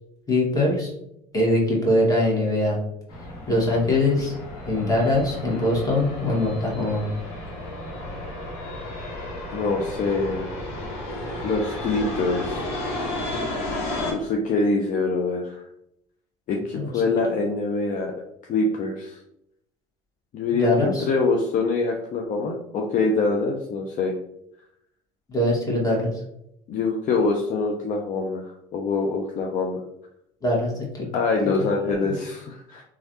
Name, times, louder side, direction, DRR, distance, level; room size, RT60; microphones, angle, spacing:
voice 1, 0.3-0.9 1.3-2.8 3.5-4.3 4.7-7.1 16.7-17.0 20.5-21.0 25.3-26.1 30.4-31.1 31.6-31.7 31.9-32.1, left 1 dB, 20° left, -3 dB, 1.5 m, -22 dB
sound 1, 3.1-14.1, left 1 dB, 65° left, 1.2 m, -33 dB
voice 2, 9.5-10.5 11.4-12.7 14.1-15.6 16.5-18.1 18.5-19.2 20.3-24.1 26.7-29.8 31.1-32.8, left 3 dB, 45° left, 1 dB, 0.5 m, -24 dB
3.1 x 2.4 x 2.8 m, 0.77 s
hypercardioid pair, 70°, 18 cm